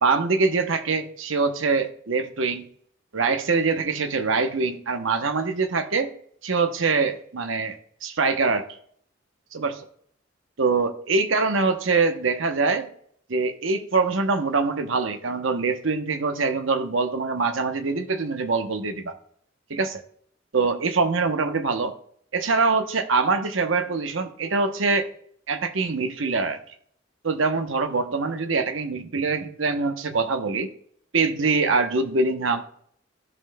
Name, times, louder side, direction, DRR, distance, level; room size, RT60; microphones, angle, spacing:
voice 1, 0.0-2.7 3.1-6.1 6.4-8.7 9.5-9.9 10.6-12.9 13.3-19.1 19.7-20.0 20.5-21.9 22.3-25.1 25.5-26.6 27.2-30.7 31.1-32.7, right 4 dB, 75° right, 9 dB, 0.8 m, -24 dB
13.5 x 5.6 x 2.2 m, 0.63 s
head